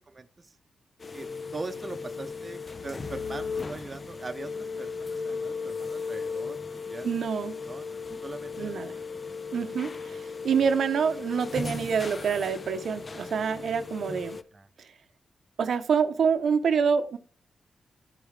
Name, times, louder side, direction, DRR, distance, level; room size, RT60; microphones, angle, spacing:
sound 1, 1.0-14.4, left 4 dB, 40° left, 0.5 m, -36 dB
voice 1, 1.5-7.1 7.6-9.0 14.5-14.7, right 3 dB, 35° right, 8 dB, 0.7 m, -41 dB
voice 2, 7.0-7.6 8.1-8.2 8.6-9.0 9.5-14.4 15.6-17.2, right 6 dB, 75° right, 8 dB, 0.7 m, -26 dB
13.0 x 5.1 x 3.2 m, 0.42 s
cardioid pair, 85°, 0 cm